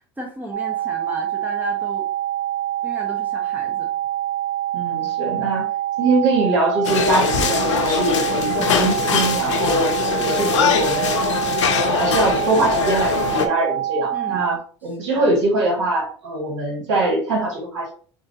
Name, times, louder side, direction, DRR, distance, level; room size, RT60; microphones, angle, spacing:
voice 1, 0.0-2.1 2.8-3.9 14.1-14.4 15.0-15.3, left 1 dB, 10° right, 0 dB, 0.9 m, -34 dB
sound 1, 0.5-14.6, right 13 dB, 55° right, 0.6 m, -25 dB
voice 2, 4.7-5.7 6.0-8.2 8.6-11.2 11.7-17.9, right 2 dB, 80° right, -1 dB, 1.9 m, -22 dB
sound 2, 6.8-13.5, left 7 dB, 85° left, 0.5 m, -22 dB
3.8 x 3.6 x 2.7 m, 0.43 s
hypercardioid pair, 80°, 15 cm